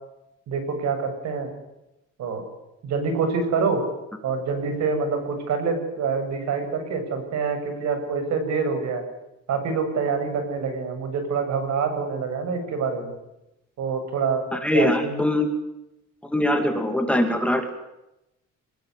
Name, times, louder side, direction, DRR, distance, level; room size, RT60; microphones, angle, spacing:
voice 1, 0.5-1.5 2.2-2.4 2.8-3.8 4.2-9.0 9.5-13.1 13.8-14.4 14.7-15.2, right 5 dB, 60° right, 7 dB, 7.6 m, -26 dB
voice 2, 14.5-15.5 16.2-17.7, left 1 dB, 5° left, 5 dB, 2.5 m, -22 dB
25.0 x 21.0 x 9.8 m, 0.91 s
cardioid pair, 170°, 31 cm